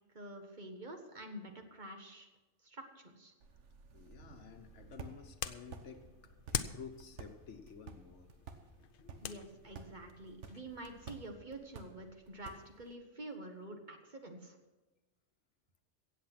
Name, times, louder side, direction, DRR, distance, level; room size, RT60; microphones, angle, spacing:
voice 1, 0.1-2.3 2.6-3.3 9.2-14.6, right 1 dB, 40° right, 4 dB, 1.5 m, -48 dB
sound 1, 3.4-13.0, right 5 dB, 75° right, 1.4 m, -54 dB
voice 2, 3.9-6.1 6.5-8.3 8.6-9.7 13.3-13.4, left 6 dB, 75° left, 7 dB, 1.4 m, -53 dB
sound 2, 4.5-11.3, left 8 dB, 55° left, 0.7 m, -46 dB
16.5 x 8.0 x 5.9 m, 1.1 s
omnidirectional pair, 1.2 m